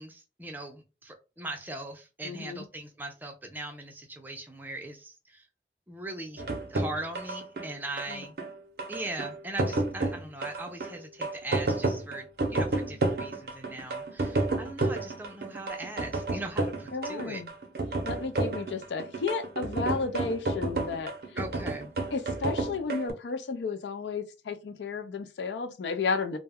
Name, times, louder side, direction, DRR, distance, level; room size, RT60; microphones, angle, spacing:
voice 1, 0.0-5.4 5.9-6.4 6.7-8.4 8.9-17.4 21.3-21.9, right 2 dB, 10° right, 0.4 m, -40 dB
voice 2, 2.2-2.6 8.1-8.2 12.8-12.9 16.9-17.5 18.0-21.1 22.1-26.4, left 4 dB, 80° left, 0.4 m, -33 dB
sound 1, 6.4-23.1, right 2 dB, 60° right, 0.5 m, -31 dB
2.1 x 2.0 x 3.4 m
head